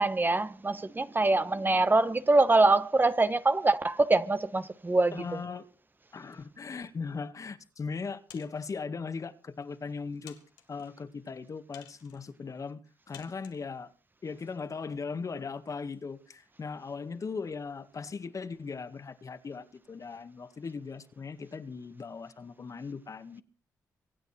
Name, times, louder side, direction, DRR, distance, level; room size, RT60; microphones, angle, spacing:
voice 1, 0.0-5.4, right 2 dB, 25° right, 1.4 m, -24 dB
voice 2, 5.1-5.7 6.1-10.4 10.7-12.8 13.1-13.9 14.2-23.4, left 5 dB, 50° left, 2.0 m, -38 dB
sound 1, 8.3-8.8 9.6-9.7 10.3-10.9 11.7-12.3 13.1-13.7, left 11 dB, 90° left, 2.1 m, -53 dB
25.0 x 9.2 x 4.5 m
supercardioid pair, 50°, 7 cm